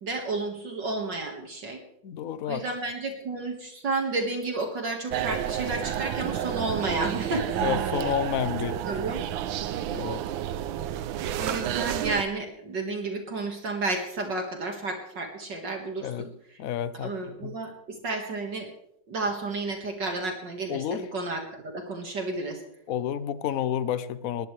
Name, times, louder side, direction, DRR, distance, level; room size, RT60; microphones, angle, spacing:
voice 1, 0.0-1.8 2.5-7.7 8.7-9.3 11.4-16.6 17.0-18.7 19.1-22.6, right 3 dB, 55° right, 3 dB, 2.4 m, -32 dB
voice 2, 2.0-2.6 7.6-8.8 9.9-10.2 16.0-16.3 16.6-17.6 20.7-21.0 22.9-24.5, left 10 dB, 65° left, 14 dB, 0.8 m, -30 dB
sound 1, 5.1-12.2, right 11 dB, 75° right, 1.5 m, -30 dB
20.5 x 19.0 x 3.3 m, 0.74 s
omnidirectional pair, 2.4 m